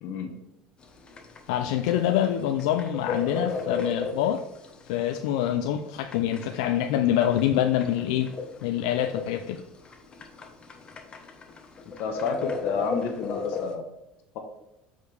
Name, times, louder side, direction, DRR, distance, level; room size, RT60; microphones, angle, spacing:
voice 1, 0.0-0.3 11.8-13.8, left 5 dB, 65° left, 5 dB, 1.0 m, -30 dB
sound 1, 0.8-13.8, left 4 dB, 30° left, 1.1 m, -36 dB
voice 2, 1.5-4.4 4.9-8.4 8.6-9.6, left 11 dB, 85° left, 6 dB, 0.4 m, -25 dB
8.0 x 5.1 x 3.4 m, 0.89 s
supercardioid pair, 115°, 3 cm